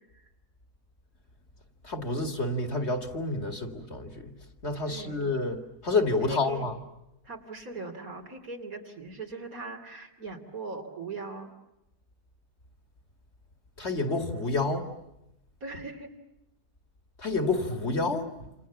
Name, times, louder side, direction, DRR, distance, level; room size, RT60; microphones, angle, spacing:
voice 1, 1.8-4.3 4.6-6.7 13.8-14.8 17.2-18.5, left 3 dB, 45° left, 7 dB, 2.5 m, -29 dB
voice 2, 4.8-5.2 6.2-6.7 7.2-11.5 15.6-16.2, right 3 dB, 65° right, 3 dB, 3.5 m, -40 dB
28.5 x 28.0 x 7.2 m, 0.88 s
omnidirectional pair, 1.6 m